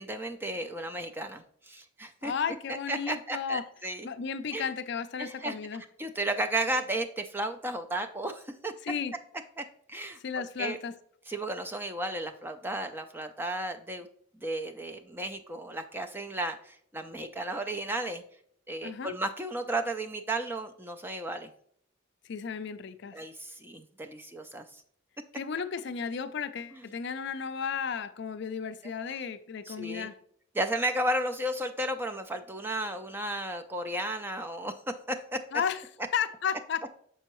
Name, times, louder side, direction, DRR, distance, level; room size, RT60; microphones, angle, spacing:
voice 1, 0.0-2.3 2.9-4.1 4.5-4.7 5.2-5.5 6.0-8.7 9.6-10.8 11.3-14.1 14.4-18.2 18.7-21.5 23.1-24.8 26.7-26.8 29.7-30.1 30.5-34.7 35.1-35.4, right 1 dB, 10° right, 0.4 m, -34 dB
voice 2, 2.2-3.6 4.0-5.8 8.8-9.1 10.2-10.9 18.8-19.2 22.2-23.2 25.3-30.2 35.5-35.8 36.1-36.9, left 6 dB, 55° left, 0.4 m, -34 dB
6.7 x 5.4 x 3.0 m
head